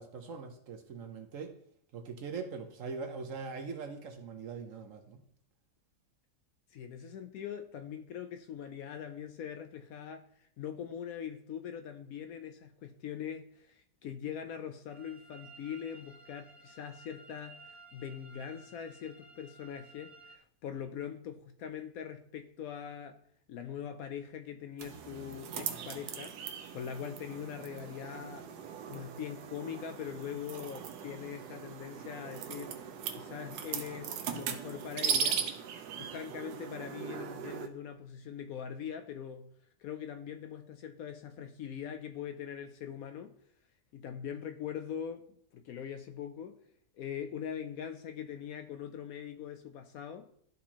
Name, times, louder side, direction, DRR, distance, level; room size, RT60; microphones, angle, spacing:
voice 1, 0.0-1.5 1.9-5.2, right 5 dB, 60° right, 1.0 m, -42 dB
voice 2, 6.7-10.3 10.6-23.2 23.5-28.5 28.9-35.4 36.0-39.5 39.8-43.4 43.9-46.6 47.0-50.3, left 8 dB, 70° left, 0.9 m, -42 dB
sound 1, 14.9-20.4, right 3 dB, 20° left, 0.9 m, -55 dB
sound 2, 24.8-37.7, right 7 dB, 75° right, 1.2 m, -39 dB
12.5 x 4.3 x 2.9 m
omnidirectional pair, 1.8 m